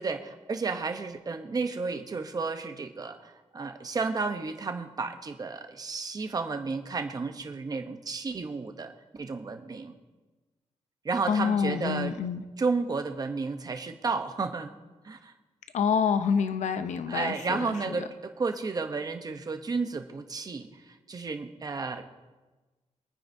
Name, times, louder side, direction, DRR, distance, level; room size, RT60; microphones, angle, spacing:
voice 1, 0.0-9.9 11.0-12.1 12.6-14.7 15.0-15.3 17.1-22.0, right 4 dB, 30° right, 6 dB, 0.8 m, -32 dB
voice 2, 11.3-12.4 15.7-18.0, left 6 dB, 75° left, 10 dB, 0.7 m, -27 dB
24.0 x 9.5 x 2.7 m, 1.2 s
wide cardioid pair, 165°, 12 cm